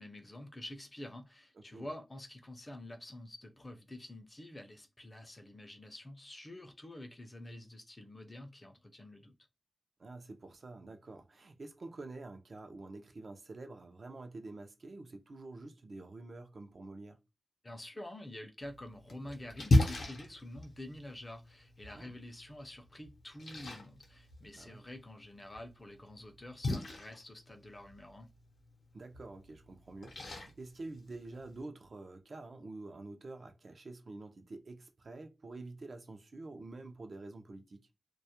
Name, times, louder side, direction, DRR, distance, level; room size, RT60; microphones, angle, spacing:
voice 1, 0.0-9.3 17.6-28.3, left 1 dB, 30° left, 0.4 m, -48 dB
voice 2, 10.0-17.2 21.9-22.1 24.5-24.8 28.9-37.9, right 2 dB, 60° right, 0.4 m, -48 dB
Splash splatter, 18.6-31.6, left 2 dB, 80° left, 0.6 m, -37 dB
2.2 x 2.0 x 2.7 m
wide cardioid pair, 85°, 0 cm